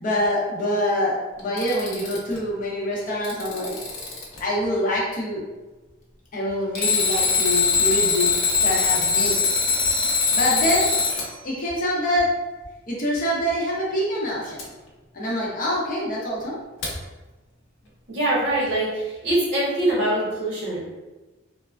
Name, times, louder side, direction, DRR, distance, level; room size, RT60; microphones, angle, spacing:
voice 1, 0.0-3.7 4.4-5.5 6.3-9.3 10.3-10.9 11.4-12.3 12.9-14.7 15.1-16.5, equal, 45° left, -5 dB, 0.7 m, -25 dB
Alarm, 1.4-2.4 3.0-4.4 6.7-11.3 14.6-14.7 16.8-16.9, left 4 dB, 75° left, 0.7 m, -22 dB
voice 2, 18.1-20.9, right 1 dB, 65° right, -7 dB, 1.1 m, -23 dB
3.1 x 2.1 x 2.3 m, 1.2 s
head